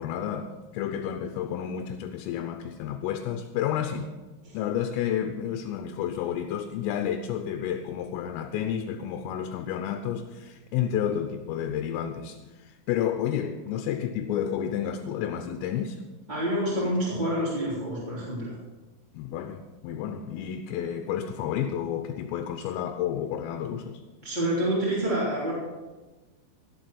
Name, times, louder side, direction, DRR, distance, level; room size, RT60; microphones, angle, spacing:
voice 1, 0.0-4.1 4.5-16.0 19.1-24.0, left 9 dB, 80° left, 3.3 m, -31 dB
voice 2, 16.3-18.6 24.2-25.5, right 1 dB, 10° right, 2.3 m, -27 dB
17.0 x 7.9 x 6.0 m
omnidirectional pair, 6.0 m